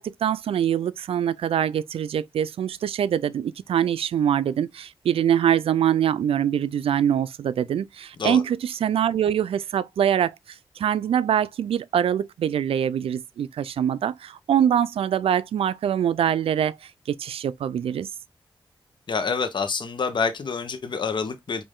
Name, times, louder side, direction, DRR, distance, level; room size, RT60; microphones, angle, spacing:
voice 1, 0.0-10.3 10.8-18.1, right 9 dB, 85° right, 0.4 m, -24 dB
voice 2, 19.1-21.6, left 5 dB, 55° left, 0.8 m, -27 dB
5.2 x 2.6 x 3.6 m
cardioid pair, 65°, 9 cm